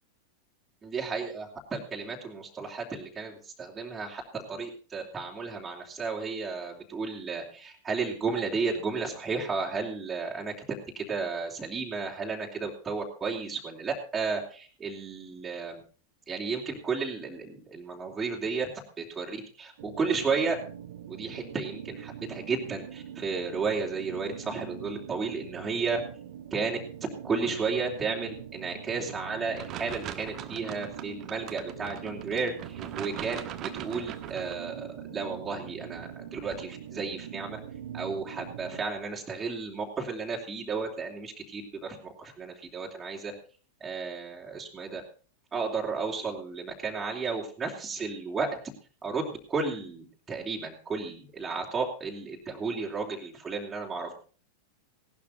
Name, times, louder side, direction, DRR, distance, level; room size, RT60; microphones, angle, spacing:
voice 1, 0.8-10.5 10.9-15.8 16.3-18.7 19.0-20.6 21.1-26.0 26.5-26.8 27.2-37.6 37.9-43.3 43.8-45.0 45.5-48.6 49.0-54.1, right 4 dB, 15° right, -2 dB, 3.2 m, -33 dB
sound 1, 19.8-38.8, right 10 dB, 55° right, 0.8 m, -43 dB
sound 2, 29.6-34.6, right 10 dB, 35° right, 1.4 m, -41 dB
18.0 x 12.0 x 4.1 m, 0.39 s
figure-of-eight pair, 90°, 0 cm